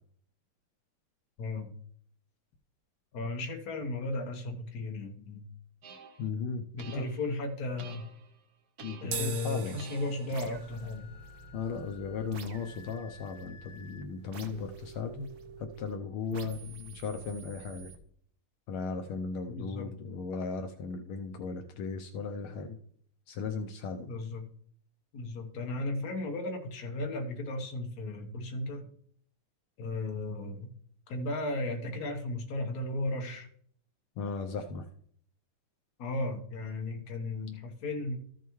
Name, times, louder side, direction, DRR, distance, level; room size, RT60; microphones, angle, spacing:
voice 1, 1.4-1.7 3.1-5.4 6.7-8.0 9.0-11.1 19.6-19.9 24.1-24.4 25.1-28.9 29.8-30.7 31.1-33.5 36.0-38.2, left 2 dB, 50° left, 3 dB, 1.5 m, -35 dB
sound 1, 5.8-6.3 6.8-7.4 7.8-8.4 8.8-9.4 9.8-15.9 16.3-18.0, right 3 dB, 55° right, 1.1 m, -49 dB
voice 2, 6.2-6.6 6.9-7.0 8.8-9.8 11.5-15.3 15.6-17.9 18.7-22.8 23.3-24.1 34.2-34.9, left 5 dB, 75° left, 5 dB, 1.5 m, -36 dB
sound 2, 9.0-15.6, right 7 dB, 75° right, 0.8 m, -45 dB
13.5 x 6.9 x 3.1 m, 0.63 s
omnidirectional pair, 2.4 m